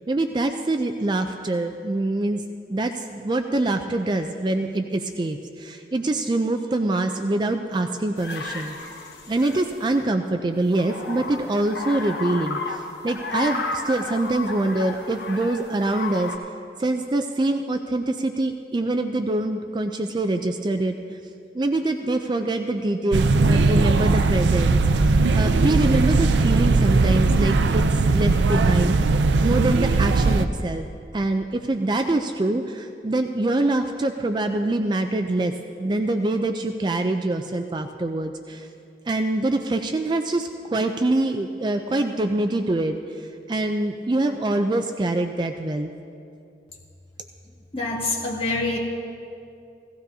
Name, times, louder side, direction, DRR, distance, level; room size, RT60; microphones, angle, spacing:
voice 1, 0.1-2.4 2.7-8.8 9.3-16.3 16.8-21.2 21.5-28.9 29.4-30.9 31.1-35.5 35.8-38.7 39.1-45.9, right 2 dB, 25° right, 6 dB, 0.4 m, -24 dB
sound 1, 8.2-9.9 10.6-16.4, left 3 dB, 70° left, 1.1 m, -33 dB
sound 2, 23.1-30.5, right 3 dB, 85° right, 0.4 m, -19 dB
voice 2, 47.7-48.8, left 3 dB, 30° left, -3 dB, 1.8 m, -26 dB
16.5 x 15.0 x 2.7 m, 2.5 s
head